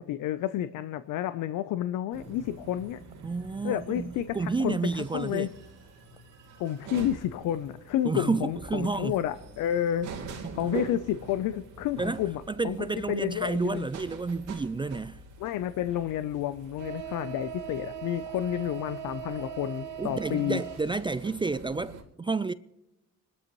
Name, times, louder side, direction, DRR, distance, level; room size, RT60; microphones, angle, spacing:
voice 1, 0.0-3.0 3.6-5.5 6.6-10.1 10.5-13.9 15.4-20.6, left 11 dB, 85° left, 0.7 m, -30 dB
sound 1, 2.1-22.0, right 6 dB, 85° right, 2.7 m, -42 dB
voice 2, 3.2-5.5 8.0-9.2 12.0-15.2 20.0-22.5, right 4 dB, 15° right, 0.4 m, -30 dB
27.0 x 13.0 x 3.1 m
cardioid pair, 90°, 30 cm